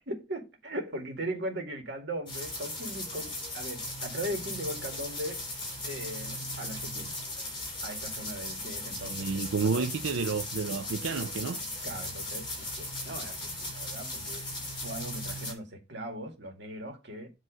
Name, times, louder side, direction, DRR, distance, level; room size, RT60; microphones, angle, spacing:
voice 1, 0.1-5.4 5.8-7.1 7.8-9.9 11.8-14.5 14.8-17.3, right 1 dB, 55° right, 1.9 m, -39 dB
sound 1, 2.3-15.5, left 1 dB, 25° left, 2.9 m, -37 dB
voice 2, 9.0-11.6, right 4 dB, 85° right, 0.6 m, -30 dB
7.7 x 3.1 x 6.1 m
head